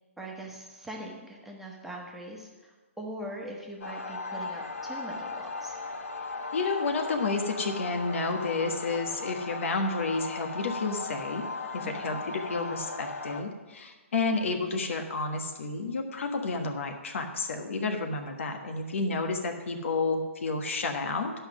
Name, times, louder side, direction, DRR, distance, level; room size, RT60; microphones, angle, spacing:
voice 1, 0.2-5.8 11.8-12.2, right 1 dB, 5° right, -2 dB, 1.3 m, -42 dB
sound 1, 3.8-13.4, left 3 dB, 85° left, 0.9 m, -37 dB
voice 2, 6.5-11.5 11.7-21.3, left 3 dB, 65° left, 4 dB, 1.3 m, -30 dB
10.5 x 5.7 x 6.1 m, 1.3 s
hypercardioid pair, 140°, 7 cm